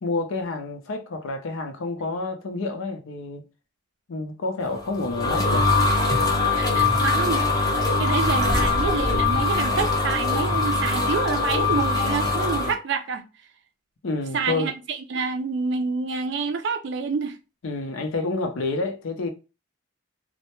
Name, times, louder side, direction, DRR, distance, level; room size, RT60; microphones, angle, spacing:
voice 1, 0.0-3.4 4.1-5.7 14.0-14.7 17.6-19.3, left 3 dB, 85° left, 0.5 m, -29 dB
sound 1, 4.7-12.7, left 3 dB, 20° left, 0.4 m, -22 dB
voice 2, 6.6-13.2 14.3-17.4, right 4 dB, 60° right, 0.4 m, -28 dB
2.1 x 2.1 x 2.8 m
head